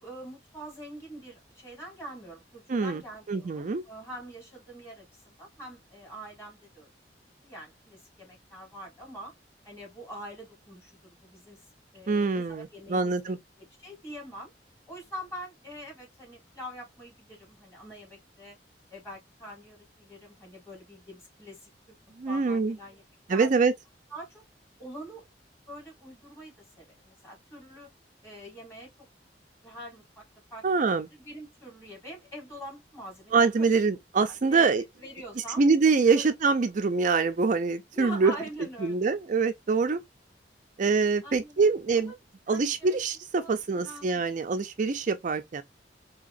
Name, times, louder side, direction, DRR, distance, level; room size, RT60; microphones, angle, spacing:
voice 1, 0.0-6.9 7.4-9.3 9.6-11.6 11.9-14.5 14.9-18.6 18.9-22.0 22.2-23.0 23.3-23.5 24.1-24.4 24.8-25.3 25.7-27.9 28.2-28.9 29.6-30.2 30.5-33.7 34.5-35.6 36.0-36.3 37.9-39.2 41.2-42.2 42.5-43.0 43.4-44.3, equal, 15° left, 3.3 m, -44 dB
voice 2, 2.7-3.0 3.3-3.8 12.1-13.4 22.2-22.8 23.3-23.7 30.6-31.1 33.3-34.8 35.6-38.3 38.8-40.0 40.8-42.1 42.5-45.6, right 4 dB, 45° right, 0.4 m, -25 dB
4.8 x 2.8 x 2.4 m
head